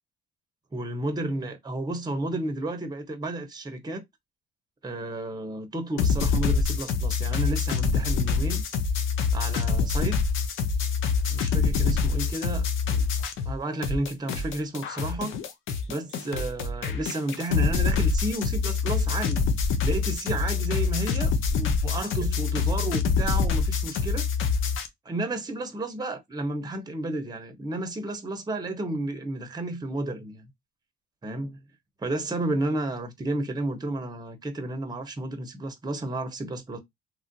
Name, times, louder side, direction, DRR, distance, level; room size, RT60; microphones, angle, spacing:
voice 1, 0.7-4.0 4.8-8.6 9.3-10.2 11.3-13.1 13.5-15.4 15.9-19.4 19.8-24.2 25.0-30.5 31.2-31.6 32.0-36.8, right 2 dB, 20° right, 0.7 m, -32 dB
sound 1, 6.0-13.6 13.8-24.9, left 5 dB, 85° left, 0.6 m, -25 dB
3.1 x 2.4 x 2.5 m
cardioid pair, 90°, 20 cm